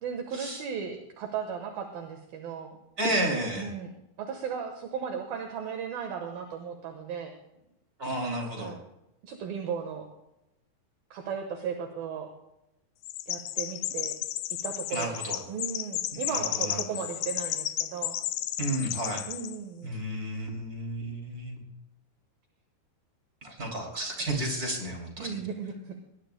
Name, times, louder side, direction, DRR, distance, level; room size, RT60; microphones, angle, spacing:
voice 1, 0.0-2.8 3.6-3.9 4.2-7.3 8.6-8.8 9.2-10.1 11.1-12.3 13.3-14.2 14.6-18.2 19.3-20.0 25.2-26.0, right 7 dB, 65° right, 5 dB, 2.7 m, -36 dB
voice 2, 3.0-3.7 8.0-8.8 14.9-15.4 16.3-17.0 18.6-19.3 19.8-21.6 23.4-25.3, right 1 dB, 25° right, 0 dB, 2.4 m, -32 dB
Chirp tweet, 13.0-19.6, left 14 dB, 80° left, 2.4 m, -33 dB
22.5 x 19.0 x 2.2 m, 0.89 s
omnidirectional pair, 5.3 m